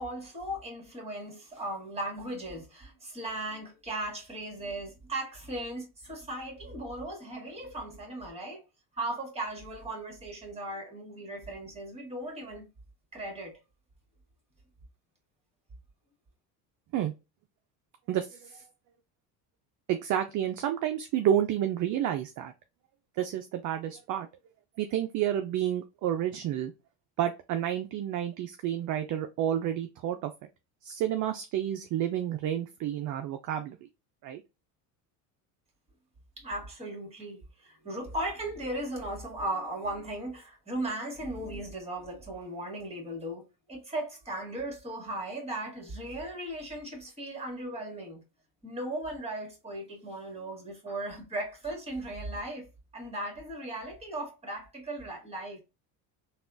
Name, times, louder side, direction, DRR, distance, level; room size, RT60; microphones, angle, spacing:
voice 1, 0.0-8.6 8.9-12.7 13.1-13.6 36.4-48.2 48.6-52.7 52.9-55.6, right 1 dB, 15° right, 1.8 m, -37 dB
voice 2, 18.1-18.6 19.9-22.5 23.2-24.3 24.8-26.7 27.2-30.3 30.8-33.9 34.2-34.4, right 11 dB, 45° right, 0.4 m, -30 dB
3.4 x 2.4 x 2.5 m
supercardioid pair, 90°, 45 cm